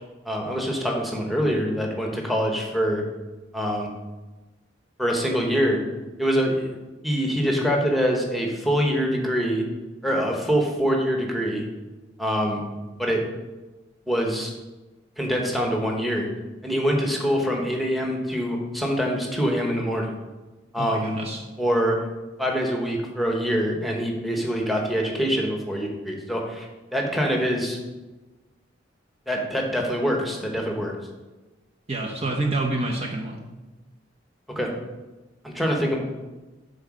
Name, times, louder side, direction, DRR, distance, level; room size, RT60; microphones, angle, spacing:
voice 1, 0.2-3.0 3.5-3.9 5.0-5.8 6.2-6.7 7.0-9.6 10.0-11.6 12.2-12.6 13.0-13.2 14.1-14.5 15.2-16.3 16.6-20.1 20.7-21.1 21.6-22.0 22.4-26.7 26.9-27.8 29.3-30.9 34.5-34.7 35.4-36.0, equal, ahead, 0 dB, 1.1 m, -24 dB
voice 2, 20.8-21.4 31.9-33.4, right 2 dB, 35° right, 0 dB, 0.7 m, -27 dB
7.8 x 3.9 x 6.3 m, 1.1 s
head